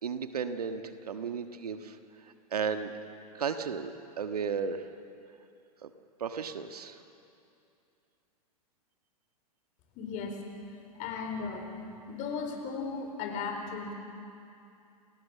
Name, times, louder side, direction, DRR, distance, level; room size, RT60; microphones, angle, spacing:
voice 1, 0.0-2.0 2.5-2.9 3.3-4.9 5.8-5.9 6.2-7.0, right 6 dB, 75° right, 8 dB, 1.5 m, -34 dB
voice 2, 9.9-10.4 10.9-11.7 12.1-13.9, left 5 dB, 40° left, 4 dB, 4.4 m, -36 dB
28.5 x 20.0 x 7.3 m, 2.6 s
figure-of-eight pair, 105°, 20 cm